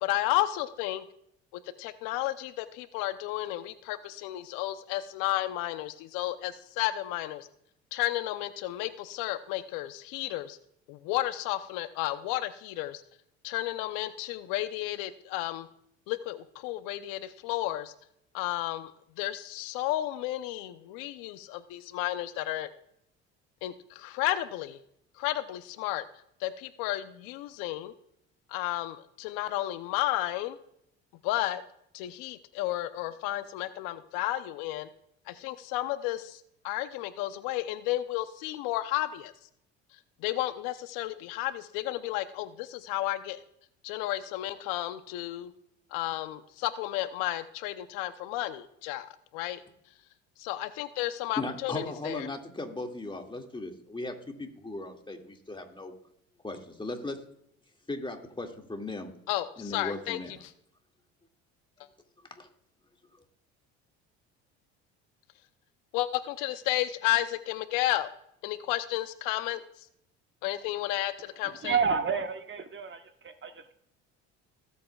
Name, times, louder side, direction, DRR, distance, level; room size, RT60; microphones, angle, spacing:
voice 1, 0.0-1.0 1.8-7.5 7.9-10.6 10.9-13.0 13.4-15.7 16.1-17.9 18.3-18.9 19.2-22.7 23.6-24.8 25.2-26.0 26.4-27.9 28.5-30.6 31.2-31.6 31.9-34.9 35.3-36.4 36.6-39.3 40.2-43.4 43.8-45.5 45.9-49.1 49.3-49.6 50.4-52.3 59.3-60.2 65.9-68.1 68.4-69.6 70.4-71.8, left 15 dB, 75° left, 12 dB, 0.8 m, -32 dB
voice 2, 51.4-55.9 56.4-57.2 57.9-59.1 59.6-60.3 62.4-62.5, left 2 dB, 15° left, 3 dB, 2.2 m, -37 dB
voice 3, 71.4-73.7, right 6 dB, 35° right, 8 dB, 1.2 m, -30 dB
19.0 x 8.5 x 2.4 m, 0.74 s
supercardioid pair, 75°, 33 cm